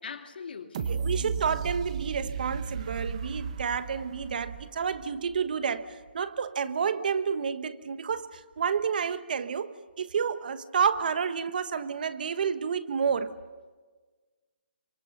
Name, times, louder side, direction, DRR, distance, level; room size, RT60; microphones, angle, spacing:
voice 1, 0.0-1.7, left 6 dB, 70° left, 2.6 m, -42 dB
sound 1, 0.7-5.6 6.1-6.2, right 6 dB, 40° right, 1.4 m, -35 dB
voice 2, 0.9-13.3, right 6 dB, 55° right, 1.3 m, -30 dB
29.0 x 25.5 x 6.6 m
hypercardioid pair, 165°, 6 cm